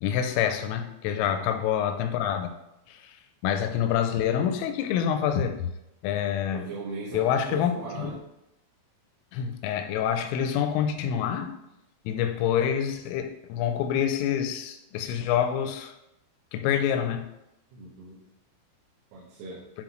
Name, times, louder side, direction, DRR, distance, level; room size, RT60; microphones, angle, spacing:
voice 1, 0.0-2.5 2.9-3.0 3.4-5.7 6.0-6.7 7.1-7.7 8.0-8.2 9.3-11.5 12.1-15.9 16.5-17.3, left 9 dB, 85° left, 8 dB, 3.2 m, -27 dB
voice 2, 1.0-1.5 6.5-8.2 17.7-18.2 19.1-19.7, right 3 dB, 80° right, -7 dB, 3.7 m, -39 dB
9.9 x 3.8 x 3.1 m, 0.86 s
omnidirectional pair, 5.7 m